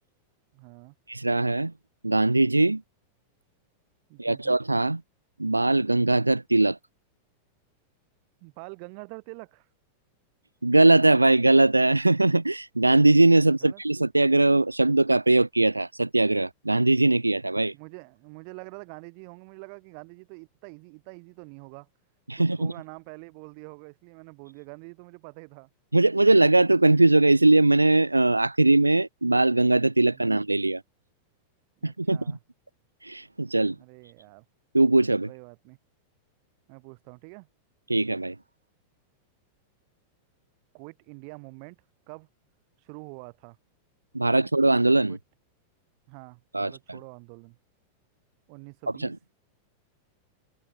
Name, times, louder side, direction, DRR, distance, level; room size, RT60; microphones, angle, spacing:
voice 1, 0.5-0.9 4.1-4.6 8.4-9.7 13.5-13.8 17.7-21.9 22.4-25.7 31.8-32.4 33.7-34.4 35.3-35.8 36.7-37.5 40.7-41.8 42.1-42.3 42.8-43.6 44.4-44.5 45.1-45.2 46.1-47.6 48.5-49.1, right 40 dB or more, 45° right, 4.6 m, -45 dB
voice 2, 1.1-1.7 2.0-2.8 4.2-5.0 5.4-6.8 10.6-17.7 22.3-22.7 25.9-30.8 31.8-32.4 33.0-33.8 34.7-35.3 37.9-38.4 44.1-45.2 46.5-47.0 49.0-49.2, right 2 dB, 85° right, 0.3 m, -21 dB
figure-of-eight pair, 90°, 0 cm